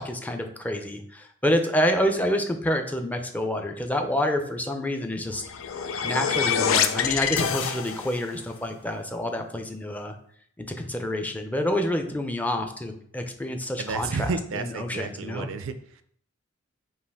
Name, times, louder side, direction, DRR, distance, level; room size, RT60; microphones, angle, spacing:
voice 1, 0.0-5.5 6.0-10.2 10.6-15.5, left 1 dB, 10° left, 5 dB, 0.4 m, -28 dB
sound 1, 5.3-8.3, left 7 dB, 85° left, 0.4 m, -26 dB
voice 2, 13.8-16.0, right 4 dB, 75° right, 10 dB, 0.4 m, -32 dB
5.3 x 2.5 x 3.4 m, 0.63 s
head